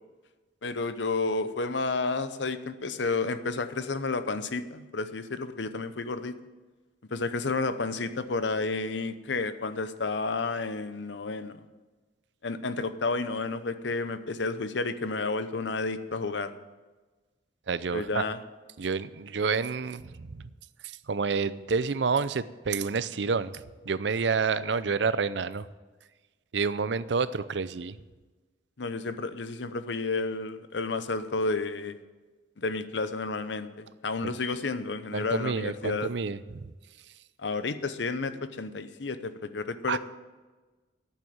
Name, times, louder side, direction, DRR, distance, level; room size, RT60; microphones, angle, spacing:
voice 1, 0.6-6.4 7.1-11.6 12.4-16.5 17.9-18.4 28.8-32.0 32.6-36.1 37.4-40.0, left 3 dB, 75° left, 12 dB, 0.8 m, -31 dB
voice 2, 17.7-18.2 18.8-20.4 21.1-23.6 23.9-25.7 26.5-28.0 35.1-36.7 39.9-40.0, right 5 dB, 70° right, 16 dB, 0.5 m, -29 dB
11.0 x 9.1 x 7.9 m, 1.3 s
head